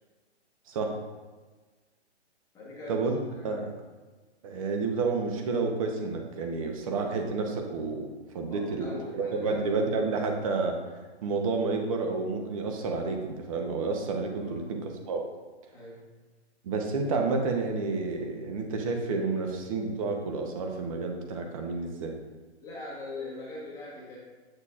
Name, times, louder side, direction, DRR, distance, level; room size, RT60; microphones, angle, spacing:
voice 1, 2.5-3.6 8.5-9.6 9.9-10.0 14.3-14.6 15.7-16.0 22.6-24.2, left 2 dB, 10° left, -6 dB, 1.1 m, -42 dB
voice 2, 4.4-8.1 8.3-8.9 9.2-10.8 11.2-15.2 16.6-22.1, right 4 dB, 30° right, 3 dB, 0.9 m, -30 dB
8.4 x 6.5 x 2.5 m, 1.3 s
hypercardioid pair, 155°, 35 cm